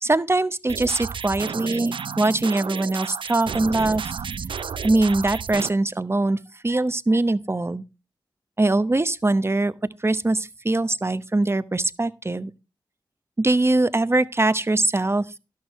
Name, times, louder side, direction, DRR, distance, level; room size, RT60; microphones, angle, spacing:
voice 1, 0.0-4.1 4.8-6.4 6.6-7.8 8.6-9.7 10.0-12.5 13.4-15.2, right 2 dB, 30° right, 0.9 m, -22 dB
sound 1, 0.7-5.7, right 6 dB, 80° right, 0.5 m, -32 dB
12.0 x 11.5 x 3.1 m
cardioid pair, 45°, 8 cm